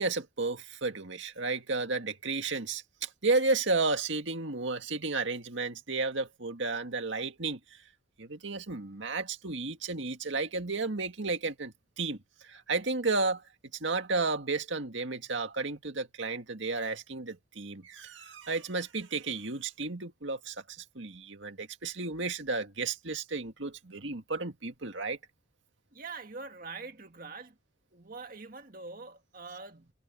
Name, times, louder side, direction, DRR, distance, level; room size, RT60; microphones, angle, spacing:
voice 1, 0.0-7.8 8.2-13.4 13.8-25.2, right 3 dB, 65° right, 2.0 m, -33 dB
voice 2, 25.9-27.6 27.9-29.9, right 4 dB, 45° right, 2.0 m, -44 dB
head